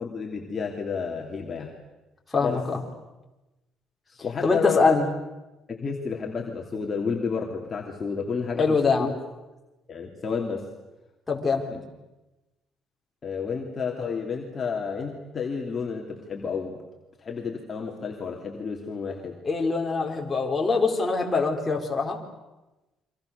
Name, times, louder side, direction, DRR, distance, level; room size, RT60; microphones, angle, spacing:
voice 1, 0.0-1.7 2.4-2.6 4.2-5.0 5.7-9.1 9.9-10.7 11.7-11.8 13.2-16.8 17.2-19.4, left 5 dB, 30° left, 0 dB, 3.1 m, -31 dB
voice 2, 2.3-2.8 4.4-5.1 8.6-9.1 11.3-11.7 19.4-22.2, left 4 dB, 15° left, 0 dB, 4.3 m, -23 dB
29.5 x 25.0 x 6.9 m, 1.1 s
cardioid pair, 125°, 0 cm